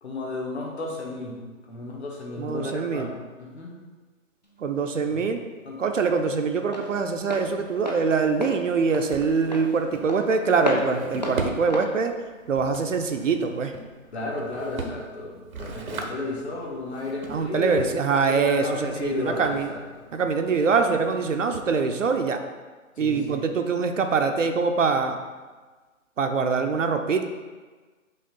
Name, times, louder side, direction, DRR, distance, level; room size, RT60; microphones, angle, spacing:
voice 1, 0.0-3.8 5.1-5.3 5.6-5.8 14.1-20.1 23.0-23.5, left 2 dB, 50° left, -2 dB, 1.5 m, -33 dB
voice 2, 2.4-3.1 4.6-5.4 5.8-12.1 12.5-13.7 17.3-19.7 20.1-22.4 23.0-25.2 26.2-27.2, right 5 dB, 65° right, 5 dB, 0.7 m, -24 dB
Walk footsteps, 4.4-13.1, equal, 35° left, 0.4 m, -34 dB
Drawer open or close, 7.0-22.2, right 3 dB, 80° right, 1.0 m, -40 dB
5.5 x 3.2 x 5.3 m, 1.3 s
hypercardioid pair, 165°, 41 cm